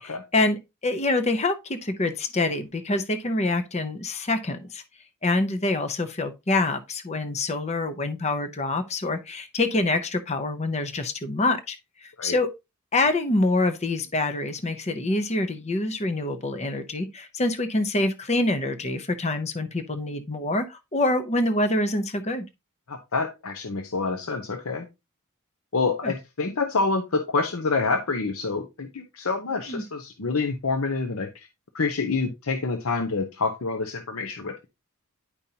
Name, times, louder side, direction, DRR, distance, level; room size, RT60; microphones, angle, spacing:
voice 1, 0.0-4.8 5.2-11.8 12.0-12.5 12.9-22.4 26.0-26.1 29.7-29.9, left 2 dB, 30° left, 0.7 m, -26 dB
voice 2, 22.9-24.9 25.7-31.5 31.7-34.7, left 4 dB, 75° left, 0.8 m, -27 dB
9.9 x 5.3 x 2.8 m
head